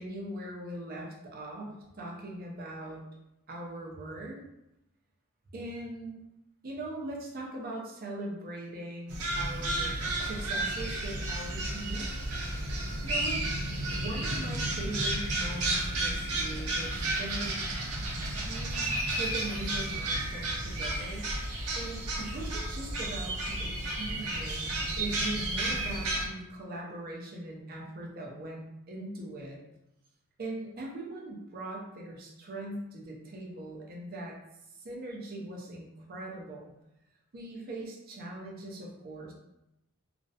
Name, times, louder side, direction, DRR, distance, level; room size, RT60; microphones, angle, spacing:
voice 1, 0.0-3.0 3.5-4.4 5.5-6.2 6.6-12.4 13.0-13.4 13.9-17.6 18.2-21.3 21.7-29.6 30.4-34.4 34.7-36.7 37.3-39.3, right 1 dB, 45° right, -2 dB, 0.5 m, -40 dB
sound 1, 9.1-26.3, right 1 dB, 90° right, 0.6 m, -32 dB
2.4 x 2.0 x 2.7 m, 0.89 s
head